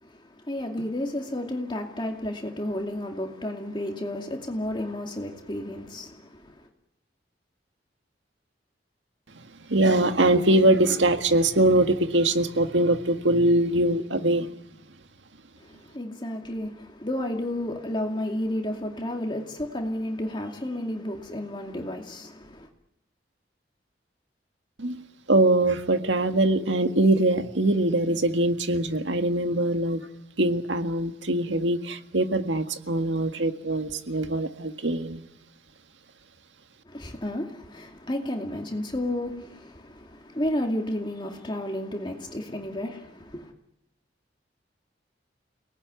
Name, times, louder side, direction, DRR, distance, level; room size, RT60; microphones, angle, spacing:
voice 1, 0.0-6.7 15.6-22.7 36.8-43.5, left 1 dB, 25° left, 2.4 m, -32 dB
voice 2, 9.7-14.5 24.8-25.0 25.3-30.1 30.4-35.2, right 1 dB, 90° right, 1.8 m, -22 dB
30.0 x 19.0 x 9.5 m
head